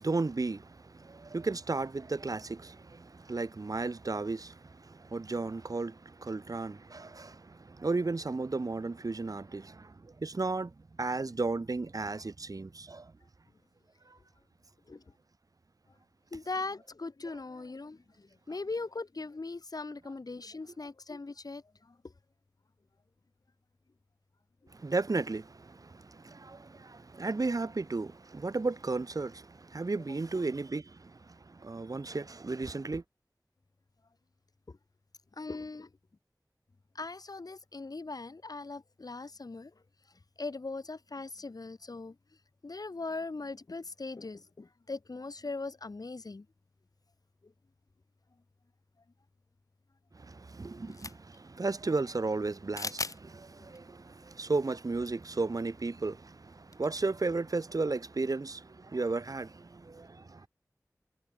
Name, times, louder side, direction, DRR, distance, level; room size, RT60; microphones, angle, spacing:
voice 1, 0.0-13.2 14.0-14.2 24.7-33.0 50.1-60.5, right 3 dB, 65° right, 1.4 m, -34 dB
voice 2, 16.3-22.0 34.7-34.8 35.4-35.9 37.0-39.7 40.4-42.2 42.6-46.5 47.4-47.5 53.6-53.7, left 3 dB, 75° left, 5.3 m, -40 dB
sound 1, 50.9-51.4 52.8-53.2 53.7-53.8 55.0-55.1 55.4-55.5 56.7-57.1, left 3 dB, 60° left, 1.5 m, -38 dB
wide cardioid pair, 60°, 6 cm